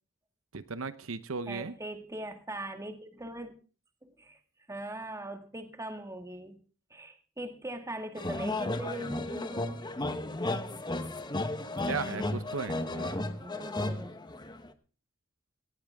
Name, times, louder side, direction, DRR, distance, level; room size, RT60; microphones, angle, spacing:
voice 1, 0.5-1.8 11.8-13.2, right 4 dB, 80° right, 12 dB, 0.9 m, -36 dB
voice 2, 1.5-3.5 4.0-4.4 4.7-6.6 6.9-9.9 13.0-14.1, right 1 dB, 15° right, 6 dB, 1.9 m, -41 dB
sound 1, 8.2-14.7, left 2 dB, 20° left, 1.1 m, -34 dB
18.0 x 15.0 x 3.6 m, 0.37 s
head